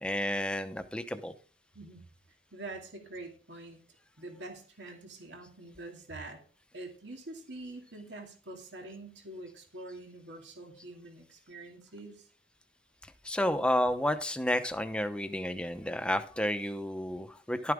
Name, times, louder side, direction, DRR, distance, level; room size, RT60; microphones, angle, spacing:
voice 1, 0.0-1.3 13.2-17.7, left 1 dB, 5° left, 8 dB, 0.8 m, -31 dB
voice 2, 2.5-3.8 4.2-6.4 6.7-12.3, right 2 dB, 90° right, 2 dB, 2.4 m, -45 dB
12.0 x 9.6 x 3.6 m, 0.39 s
head